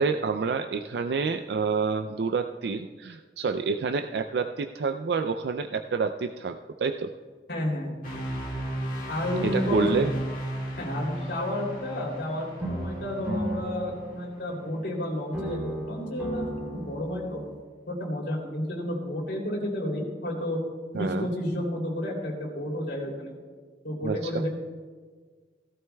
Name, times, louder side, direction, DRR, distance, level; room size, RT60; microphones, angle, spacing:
voice 1, 0.0-7.1 9.4-10.1 20.9-21.3 24.0-24.5, right 4 dB, 70° right, 7 dB, 0.4 m, -28 dB
voice 2, 7.5-8.0 9.1-10.0 10.7-17.4 17.9-20.6 20.9-23.4 23.8-24.5, left 1 dB, 80° left, -1 dB, 3.0 m, -31 dB
sound 1, 8.0-14.2, right 1 dB, 50° left, 1.9 m, -35 dB
sound 2, 12.6-15.0 15.3-17.6, equal, 10° right, 3.0 m, -35 dB
17.0 x 12.5 x 2.3 m, 1.5 s
head